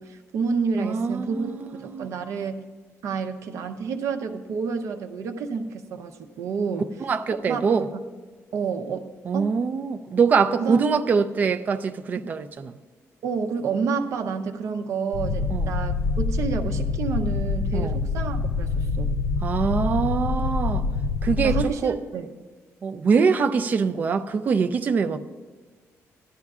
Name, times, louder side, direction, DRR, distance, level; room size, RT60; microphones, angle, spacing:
voice 1, 0.0-2.6 3.0-6.9 7.5-8.0 8.5-9.5 10.6-10.8 13.2-19.1 21.4-22.3, right 5 dB, 65° right, 0.7 m, -29 dB
voice 2, 0.8-2.1 7.0-7.9 9.2-12.7 15.5-15.7 17.7-18.0 19.4-20.9 21.2-22.0 22.8-25.2, right 5 dB, 30° right, 0.4 m, -24 dB
sound 1, 15.1-21.7, left 4 dB, 80° left, 0.5 m, -26 dB
16.5 x 12.0 x 2.4 m
cardioid pair, 180°, 6 cm